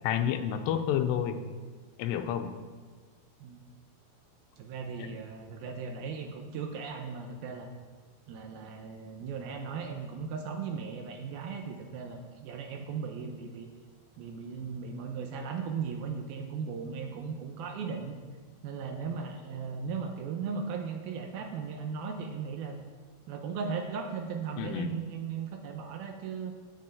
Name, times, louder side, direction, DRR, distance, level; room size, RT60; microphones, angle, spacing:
voice 1, 0.0-1.4 2.0-2.5 5.0-5.1 24.6-24.9, left 9 dB, 80° left, 7 dB, 2.8 m, -29 dB
voice 2, 4.6-7.7 8.3-13.7 14.2-18.2 18.6-22.8 23.3-26.5, right 5 dB, 75° right, 4 dB, 2.4 m, -37 dB
9.0 x 7.8 x 7.7 m, 1.5 s
omnidirectional pair, 4.9 m